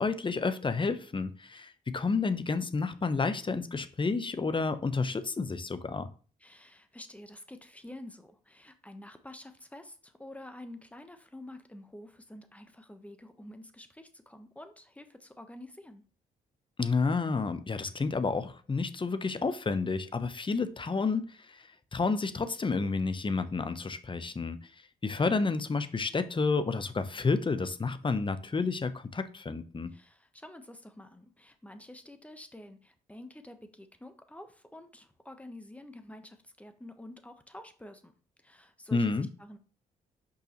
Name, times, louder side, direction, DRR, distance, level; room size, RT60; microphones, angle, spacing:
voice 1, 0.0-6.1 16.8-24.6 25.0-29.9 38.9-39.3, left 4 dB, 25° left, 0.9 m, -30 dB
voice 2, 6.4-16.0 29.9-38.1 38.4-39.6, left 1 dB, 5° left, 1.2 m, -49 dB
6.6 x 5.3 x 3.1 m
hypercardioid pair, 45°, 20 cm